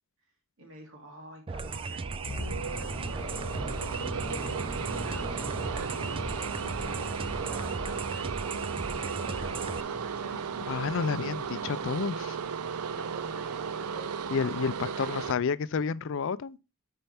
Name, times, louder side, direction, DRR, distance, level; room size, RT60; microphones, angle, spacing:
voice 1, 0.6-3.2 4.0-10.6 12.9-14.2 14.8-15.1, equal, 65° right, 2.6 m, -48 dB
sound 1, 1.5-9.8, right 4 dB, 25° right, 0.3 m, -37 dB
sound 2, 1.7-15.3, right 6 dB, 85° right, 0.5 m, -35 dB
sound 3, 2.2-12.2 12.5-12.7, equal, 10° left, 2.3 m, -41 dB
voice 2, 10.7-12.4 14.3-16.6, left 6 dB, 60° left, 0.4 m, -30 dB
9.6 x 4.5 x 3.4 m
head